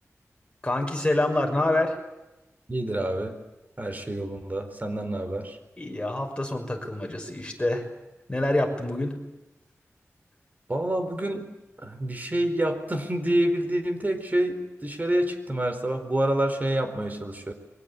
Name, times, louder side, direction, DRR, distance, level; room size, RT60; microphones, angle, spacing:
voice 1, 0.6-2.0 5.8-7.8 8.3-9.1, left 1 dB, 20° left, 3 dB, 5.9 m, -26 dB
voice 2, 2.7-3.3 3.8-5.6 10.7-11.5 11.8-17.5, right 1 dB, 35° right, 7 dB, 4.6 m, -27 dB
29.0 x 23.5 x 8.6 m, 1.0 s
wide cardioid pair, 85°, 5 cm